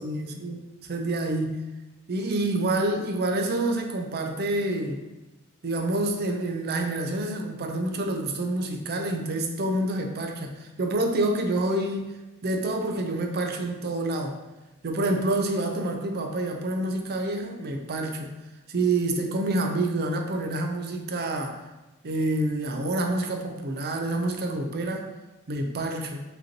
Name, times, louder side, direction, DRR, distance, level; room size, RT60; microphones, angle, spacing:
voice 1, 0.0-1.6 2.1-5.0 5.6-12.1 12.4-14.4 14.8-18.3 18.7-21.6 22.0-25.1 25.5-26.2, right 2 dB, 45° right, 4 dB, 0.5 m, -27 dB
5.0 x 3.1 x 2.8 m, 1.1 s
head